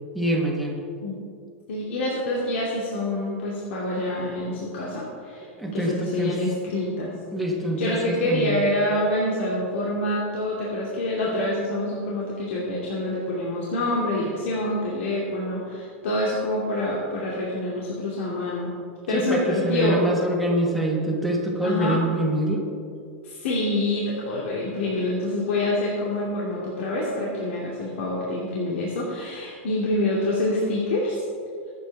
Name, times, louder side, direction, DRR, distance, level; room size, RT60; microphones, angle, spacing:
voice 1, 0.1-0.8 5.6-6.3 7.3-8.6 19.1-22.6, right 1 dB, ahead, -1 dB, 1.5 m, -25 dB
voice 2, 1.7-7.1 7.8-18.7 19.1-20.0 21.6-22.0 23.2-31.2, left 1 dB, 80° left, -5 dB, 2.7 m, -26 dB
24.0 x 8.4 x 3.6 m, 2.4 s
supercardioid pair, 175°, 6 cm